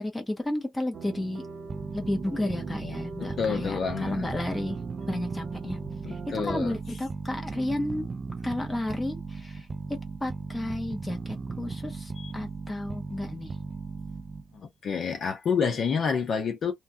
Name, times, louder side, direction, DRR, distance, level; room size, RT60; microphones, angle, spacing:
voice 1, 0.0-1.4 1.9-4.8 5.1-5.8 6.1-8.1 8.4-13.6, left 1 dB, 10° left, 0.9 m, -32 dB
sound 1, 0.9-6.8, right 5 dB, 55° right, 0.9 m, -41 dB
sound 2, 1.7-14.6, right 4 dB, 25° right, 0.3 m, -37 dB
voice 2, 3.2-4.3 6.0-6.7 12.2-12.3 14.5-16.7, left 6 dB, 55° left, 0.9 m, -28 dB
3.1 x 2.3 x 2.6 m
cardioid pair, 150°, 0 cm